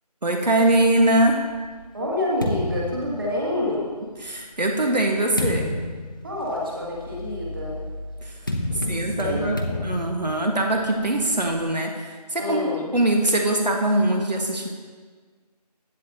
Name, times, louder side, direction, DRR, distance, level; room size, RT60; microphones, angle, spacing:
voice 1, 0.2-1.4 4.2-5.7 8.2-8.4 8.9-12.7 12.9-14.7, right 1 dB, 80° right, 2 dB, 1.6 m, -22 dB
sound 1, 1.1-3.9 4.6-11.7, left 1 dB, 30° left, 0.8 m, -31 dB
voice 2, 1.9-3.9 6.2-7.8 8.7-9.8 12.4-12.9, left 1 dB, 35° right, -4 dB, 2.4 m, -28 dB
15.5 x 9.4 x 2.9 m, 1.5 s
figure-of-eight pair, 170°, 21 cm